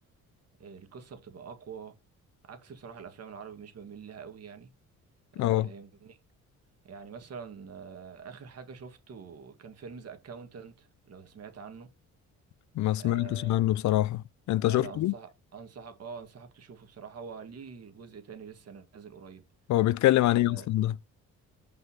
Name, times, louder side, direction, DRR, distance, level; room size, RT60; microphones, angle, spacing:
voice 1, 0.6-2.0 2.5-4.7 5.3-6.2 6.8-11.9 13.0-13.6 14.6-19.4 20.3-20.7, right 6 dB, 55° right, 2.2 m, -45 dB
voice 2, 5.4-5.7 12.8-15.1 19.7-20.9, left 15 dB, 70° left, 0.5 m, -25 dB
5.8 x 5.5 x 5.8 m
cardioid pair, 90°, 30 cm